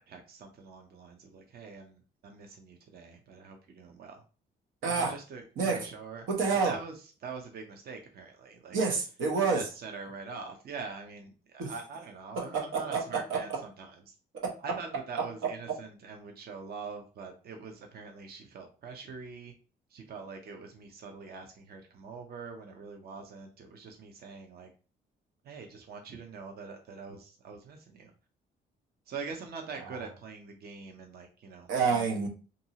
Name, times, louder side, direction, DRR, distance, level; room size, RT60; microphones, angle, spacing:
voice 1, 0.1-4.2 4.9-6.3 6.6-8.8 9.5-14.2 14.6-19.5 19.9-24.7 25.4-28.1 29.1-32.3, right 5 dB, 50° right, 4 dB, 0.6 m, -44 dB
voice 2, 4.8-5.1 5.6-5.9 6.3-6.7 8.7-9.6 11.6-11.7 12.5-13.6 14.3-14.5 31.7-32.3, right 5 dB, 80° right, 2 dB, 0.8 m, -28 dB
2.7 x 2.6 x 2.8 m, 0.35 s
cardioid pair, 90°, 20 cm